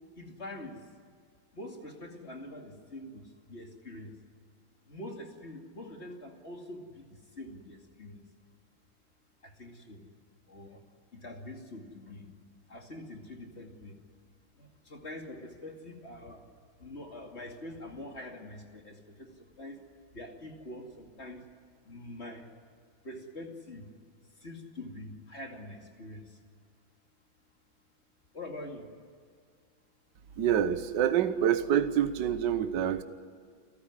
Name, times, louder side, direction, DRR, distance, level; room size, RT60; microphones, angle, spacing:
voice 1, 0.2-0.8 1.5-4.1 4.9-8.2 9.4-10.0 10.5-10.8 11.1-12.3 12.7-14.0 14.6-16.4 16.8-19.8 20.1-21.4 21.9-22.5 23.0-23.9 24.4-26.2 28.3-28.9, left 1 dB, 35° left, 2 dB, 2.8 m, -44 dB
voice 2, 30.4-33.0, right 9 dB, 70° right, 11 dB, 1.6 m, -26 dB
29.0 x 14.0 x 9.9 m, 2.1 s
omnidirectional pair, 2.1 m